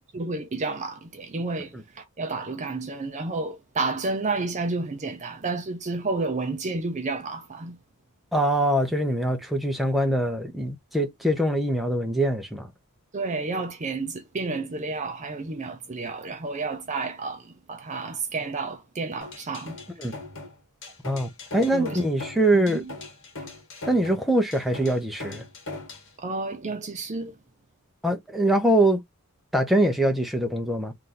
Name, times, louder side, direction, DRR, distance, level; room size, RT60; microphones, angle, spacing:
voice 1, 0.0-7.8 13.1-19.8 21.7-22.0 22.5-22.9 23.4-23.5 26.2-27.4, right 3 dB, 30° right, 0.5 m, -31 dB
voice 2, 8.3-12.7 20.0-20.1 21.0-22.8 23.9-25.4 28.0-29.0 29.5-30.9, right 1 dB, ahead, 0.8 m, -23 dB
sound 1, 19.2-26.1, left 2 dB, 60° left, 1.7 m, -40 dB
3.2 x 2.8 x 3.8 m
head